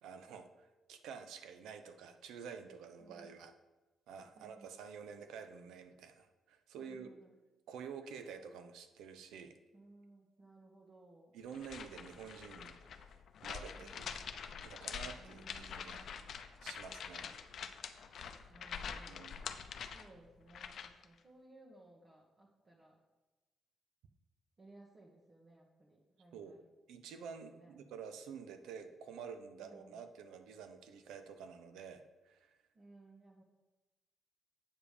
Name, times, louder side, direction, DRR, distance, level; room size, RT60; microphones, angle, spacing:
voice 1, 0.0-3.5 4.1-7.1 7.7-9.6 11.3-13.1 13.4-14.1 14.6-16.0 16.6-17.3 19.0-19.3 26.3-26.5 26.9-32.6, right 6 dB, 85° right, 8 dB, 0.7 m, -49 dB
voice 2, 3.0-3.4 4.3-4.8 6.8-7.4 9.7-11.4 13.8-14.3 14.9-16.3 18.5-19.3 19.9-23.0 24.6-26.7 27.4-27.8 29.6-30.0 32.7-33.4, right 2 dB, 35° right, -3 dB, 1.4 m, -61 dB
sound 1, 11.5-21.0, left 7 dB, 60° left, 0.6 m, -46 dB
8.5 x 5.0 x 5.0 m, 1.2 s
cardioid pair, 90°, 0 cm